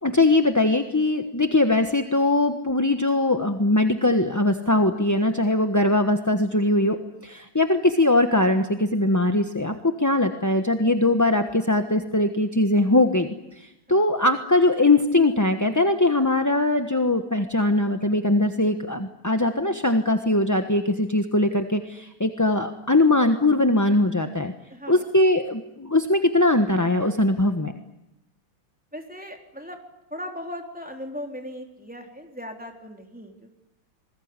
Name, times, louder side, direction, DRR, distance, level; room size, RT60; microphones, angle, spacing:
voice 1, 0.0-7.0 7.2-13.3 13.6-24.5 24.9-27.7, left 2 dB, 10° left, 6 dB, 0.9 m, -21 dB
voice 2, 24.7-25.0 28.9-29.8 30.1-33.6, equal, 5° right, 2 dB, 3.8 m, -38 dB
27.5 x 21.0 x 9.8 m, 0.92 s
omnidirectional pair, 2.2 m